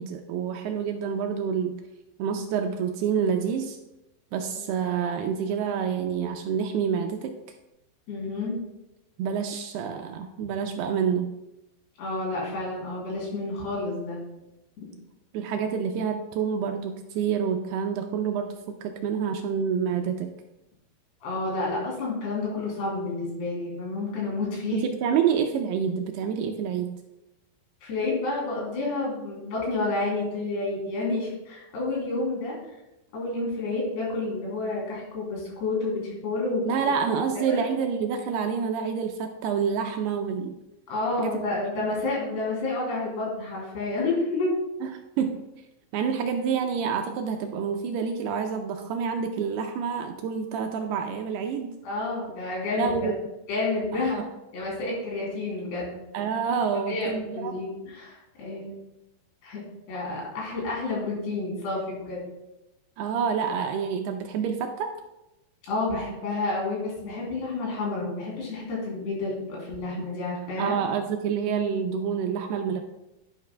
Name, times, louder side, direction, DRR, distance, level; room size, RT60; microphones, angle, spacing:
voice 1, 0.0-1.8 2.2-3.8 4.3-7.4 9.2-11.4 15.3-20.3 24.7-27.0 36.6-40.6 41.2-41.4 41.8-41.9 44.8-45.4 45.9-51.8 52.8-53.2 53.9-54.3 56.1-57.5 63.0-64.9 70.6-72.8, right 7 dB, 80° right, 5 dB, 2.4 m, -28 dB
voice 2, 8.1-8.6 12.0-14.2 21.2-24.8 27.8-32.6 33.1-36.8 37.4-37.6 40.9-44.5 51.8-53.1 53.5-54.2 54.5-55.9 56.7-58.8 59.4-59.6 59.9-62.2 65.7-70.8, left 2 dB, 70° left, -4 dB, 5.3 m, -30 dB
11.0 x 10.5 x 2.3 m, 0.95 s
omnidirectional pair, 5.0 m